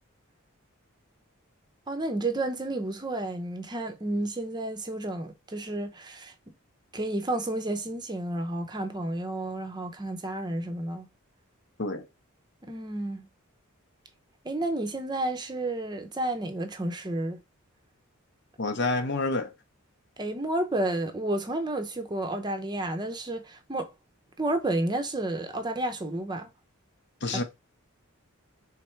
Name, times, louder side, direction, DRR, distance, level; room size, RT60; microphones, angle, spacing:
voice 1, 1.9-6.3 6.9-11.1 12.6-13.3 14.4-17.4 20.2-23.9 24.4-26.5, right 1 dB, 20° right, 0.7 m, -31 dB
voice 2, 18.6-19.5 27.2-27.4, left 3 dB, 55° left, 0.8 m, -28 dB
3.6 x 3.3 x 4.4 m
head